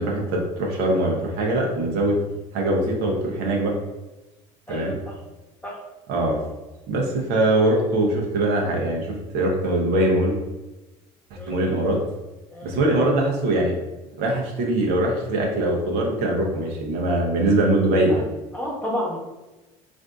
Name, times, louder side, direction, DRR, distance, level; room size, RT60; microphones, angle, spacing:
voice 1, 0.0-2.2 2.5-3.7 4.7-4.9 6.1-6.4 6.9-10.4 11.5-12.0 12.6-13.7 14.2-18.2, right 1 dB, 60° right, -1 dB, 0.8 m, -22 dB
voice 2, 4.7-5.1 5.6-5.7 11.4-11.7 12.5-12.8 18.1-18.2 18.5-19.2, equal, 10° left, -3 dB, 1.0 m, -31 dB
3.4 x 2.5 x 2.4 m, 1.1 s
hypercardioid pair, 80°, 17 cm